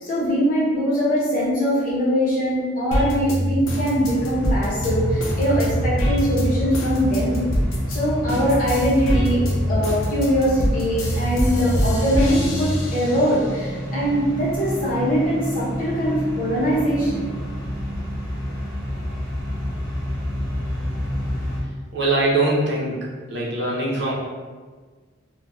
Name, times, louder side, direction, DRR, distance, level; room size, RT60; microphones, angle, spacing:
voice 1, 0.0-7.4 7.9-9.4 9.6-17.3, equal, 40° left, -8 dB, 0.9 m, -22 dB
sound 1, 2.9-8.0 8.3-13.5 13.9-14.9, equal, 80° left, 0.5 m, -24 dB
sound 2, 4.0-21.6, equal, 15° left, 0.7 m, -29 dB
voice 2, 21.9-23.0 23.3-24.1, right 2 dB, 55° right, -5 dB, 0.6 m, -22 dB
2.3 x 2.1 x 3.1 m, 1.4 s
head